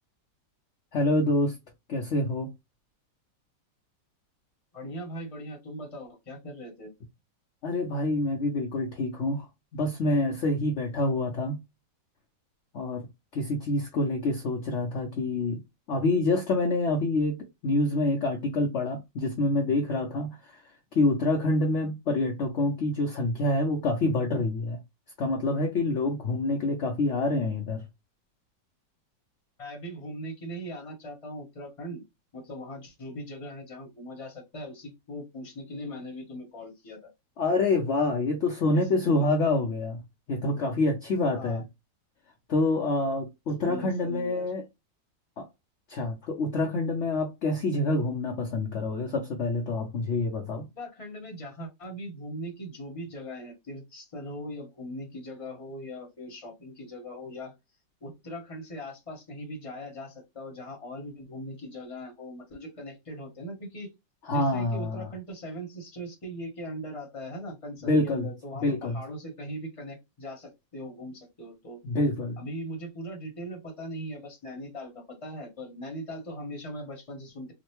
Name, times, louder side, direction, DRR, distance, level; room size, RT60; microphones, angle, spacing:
voice 1, 0.9-1.6 1.9-2.5 7.6-9.5 9.7-11.6 12.7-13.1 13.3-15.6 15.9-17.4 17.6-20.6 20.9-24.8 25.2-27.8 37.4-40.0 40.3-41.6 42.5-44.6 45.4-45.5 45.9-50.6 64.3-65.1 67.8-68.3 68.6-69.0 71.8-72.4, left 2 dB, 65° left, 0.7 m, -27 dB
voice 2, 4.7-6.9 29.6-32.0 32.3-37.1 38.7-39.3 41.3-41.6 43.6-44.5 50.7-57.5 58.0-63.9 64.3-71.8 72.4-77.5, equal, 25° left, 0.9 m, -40 dB
3.8 x 2.1 x 3.0 m
omnidirectional pair, 2.0 m